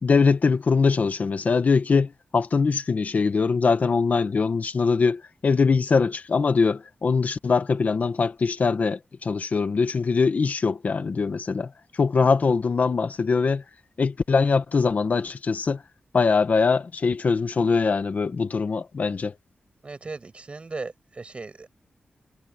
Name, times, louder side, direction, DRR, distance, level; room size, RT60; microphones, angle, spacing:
voice 1, 0.0-11.7 12.0-13.6 14.0-15.8 16.1-19.3, left 4 dB, 50° left, 1.7 m, -22 dB
voice 2, 19.8-21.7, right 3 dB, 35° right, 6.9 m, -37 dB
wide cardioid pair, 140°, 3 cm